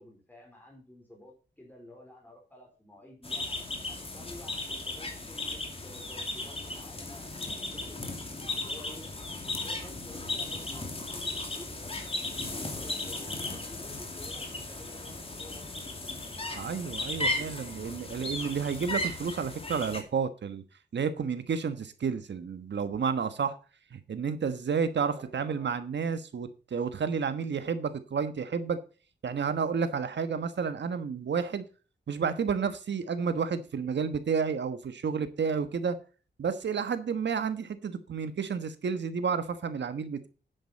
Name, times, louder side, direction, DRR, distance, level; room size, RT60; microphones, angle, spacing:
voice 1, 0.0-3.5 3.9-9.1 9.5-11.9 12.5-16.1 17.2-17.5 25.0-25.7, left 1 dB, 10° left, -1 dB, 3.9 m, -51 dB
sound 1, 3.2-20.0, left 2 dB, 30° left, 2.4 m, -36 dB
voice 2, 16.5-20.6 20.9-23.6 23.9-28.8 29.2-31.6 32.1-36.0 36.4-40.3, right 6 dB, 75° right, 11 dB, 1.3 m, -31 dB
10.5 x 8.1 x 4.2 m, 0.36 s
wide cardioid pair, 110°, 18 cm